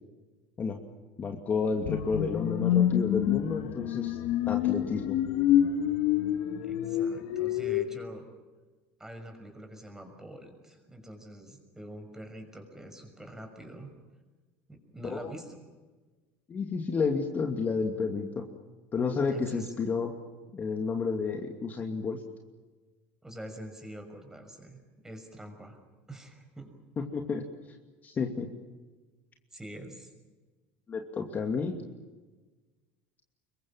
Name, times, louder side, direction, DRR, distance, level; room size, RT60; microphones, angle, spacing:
voice 1, 1.2-4.2 4.5-5.2 15.0-15.3 16.5-18.5 18.9-20.1 20.5-22.2 27.0-27.5 28.0-28.5 30.9-31.8, left 5 dB, 30° left, 4 dB, 2.6 m, -31 dB
sound 1, 1.8-7.8, left 11 dB, 65° left, 1.8 m, -27 dB
voice 2, 6.6-8.3 9.0-13.9 14.7-15.6 19.3-19.8 23.2-25.8 26.1-26.7 29.5-30.1, right 1 dB, 10° right, 6 dB, 6.2 m, -45 dB
26.5 x 23.0 x 7.5 m, 1.3 s
supercardioid pair, 125°, 6 cm